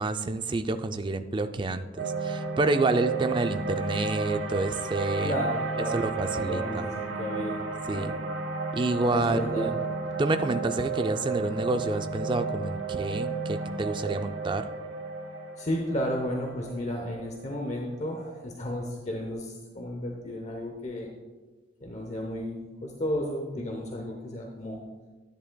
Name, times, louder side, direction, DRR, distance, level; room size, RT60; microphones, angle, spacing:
voice 1, 0.0-5.4 5.9-6.9 7.9-8.1 8.7-9.7 10.2-14.7, right 2 dB, 25° right, 9 dB, 0.3 m, -28 dB
sound 1, 2.0-18.2, right 4 dB, 80° right, 0.9 m, -33 dB
voice 2, 5.2-7.6 7.9-8.2 9.1-9.7 15.6-21.1 21.8-24.8, equal, 40° left, 1 dB, 0.8 m, -33 dB
10.5 x 10.0 x 2.2 m, 1.3 s
head